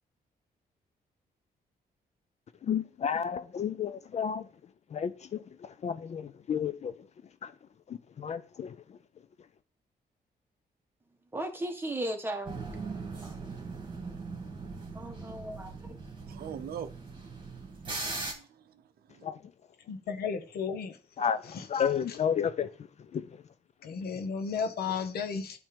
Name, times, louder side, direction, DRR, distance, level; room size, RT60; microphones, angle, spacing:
voice 1, 2.6-4.5 4.9-5.4 5.8-6.9 7.4-7.5 7.9-8.8 19.2-19.4 21.2-22.7 23.1-23.3, left 8 dB, 45° left, 0.4 m, -31 dB
voice 2, 11.3-12.6 13.2-13.4 14.9-16.0, right 1 dB, 15° right, 1.3 m, -36 dB
sound 1, 12.5-18.3, right 3 dB, 30° right, 2.1 m, -40 dB
voice 3, 16.2-18.8 19.1-19.3, right 8 dB, 70° right, 0.6 m, -44 dB
voice 4, 19.9-21.0 21.5-21.7 23.8-25.6, left 6 dB, 80° left, 1.1 m, -34 dB
8.8 x 3.3 x 5.1 m
cardioid pair, 120°, 16 cm